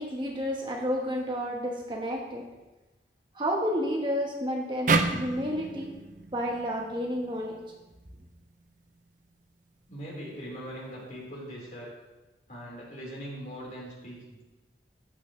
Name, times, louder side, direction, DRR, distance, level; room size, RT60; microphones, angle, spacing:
voice 1, 0.0-2.4 3.3-5.9 6.3-7.6, equal, 25° right, 0 dB, 1.3 m, -31 dB
sound 1, 4.9-8.1, right 3 dB, 45° right, 0.7 m, -30 dB
voice 2, 9.9-11.9 12.5-14.4, equal, 45° left, -5 dB, 4.2 m, -41 dB
14.0 x 9.0 x 3.2 m, 1.1 s
head